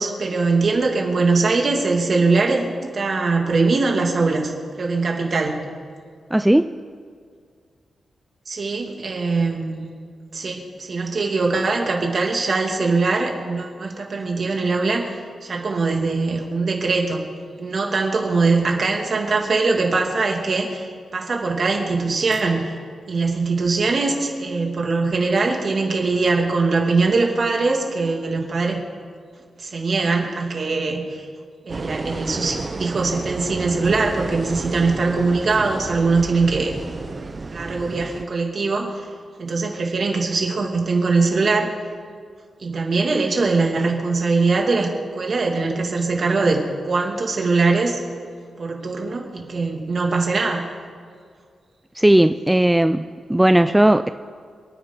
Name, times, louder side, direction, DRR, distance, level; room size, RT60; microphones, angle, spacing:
voice 1, 0.0-5.6 8.5-9.9 10.3-15.1 15.4-17.2 17.6-22.7 23.1-28.8 29.6-31.2 31.6-36.7 37.5-39.0 39.4-41.7 42.6-48.0 48.6-50.7, right 3 dB, 50° right, 1 dB, 2.5 m, -22 dB
voice 2, 6.3-6.7 52.0-54.1, right 1 dB, 10° right, 9 dB, 0.3 m, -16 dB
sound 1, 31.7-38.2, right 3 dB, 35° right, 0.9 m, -31 dB
27.5 x 9.8 x 4.0 m, 2.1 s
wide cardioid pair, 110°, 0 cm